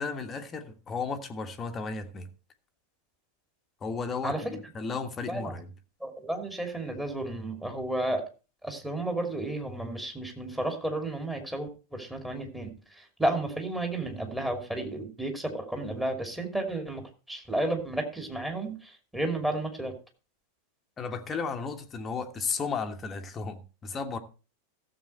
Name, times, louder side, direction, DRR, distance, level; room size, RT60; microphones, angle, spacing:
voice 1, 0.0-2.3 3.8-5.7 21.0-24.2, left 4 dB, 20° left, 1.4 m, -34 dB
voice 2, 4.2-4.6 5.3-5.5 6.0-8.2 8.6-19.9, right 1 dB, 5° right, 2.7 m, -32 dB
14.5 x 7.4 x 4.5 m
figure-of-eight pair, 90°, 0 cm